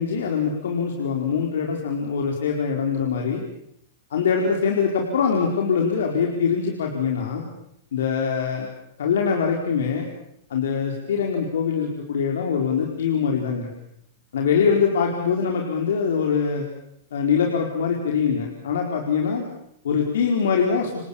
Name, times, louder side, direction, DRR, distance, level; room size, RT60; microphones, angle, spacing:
voice 1, 0.0-3.4 4.1-7.4 7.9-8.7 9.0-10.1 10.5-13.7 14.3-16.7 17.1-19.4 19.8-20.9, left 6 dB, 80° left, 1 dB, 4.6 m, -23 dB
29.0 x 24.5 x 7.3 m, 0.75 s
hypercardioid pair, 140°, 0 cm